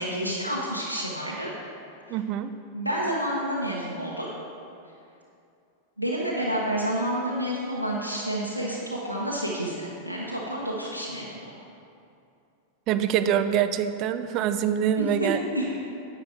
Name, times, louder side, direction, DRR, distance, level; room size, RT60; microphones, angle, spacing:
voice 1, 0.0-1.5 2.1-2.2 2.7-4.3 6.0-11.4 15.0-15.7, equal, 85° right, -5 dB, 1.1 m, -29 dB
voice 2, 2.1-2.5 12.9-15.4, right 9 dB, 40° right, 11 dB, 0.5 m, -25 dB
10.0 x 8.1 x 4.4 m, 2.6 s
figure-of-eight pair, 90°, 0 cm